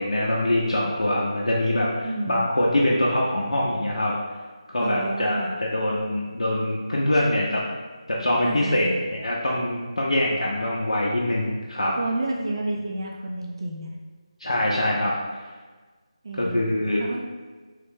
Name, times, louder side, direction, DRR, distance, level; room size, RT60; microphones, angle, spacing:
voice 1, 0.0-4.1 4.7-7.6 8.1-12.0 14.4-15.1 16.4-17.0, left 1 dB, 80° left, -4 dB, 0.5 m, -24 dB
voice 2, 2.0-2.5 4.8-5.6 8.4-9.0 12.0-13.9 16.2-16.6 17.0-17.3, right 2 dB, 45° right, 0 dB, 0.3 m, -30 dB
3.1 x 2.1 x 3.1 m, 1.4 s
figure-of-eight pair, 165°, 3 cm